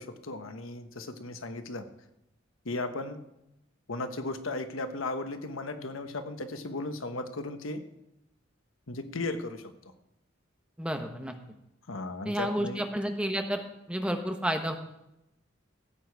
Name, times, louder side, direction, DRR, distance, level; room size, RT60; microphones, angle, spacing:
voice 1, 0.0-1.9 2.6-3.2 3.9-7.8 8.9-9.7 11.9-12.8, left 2 dB, 85° left, 8 dB, 1.1 m, -36 dB
voice 2, 10.8-11.3 12.2-13.6 13.9-14.8, equal, 5° right, 5 dB, 1.0 m, -30 dB
15.5 x 8.5 x 4.7 m, 0.86 s
head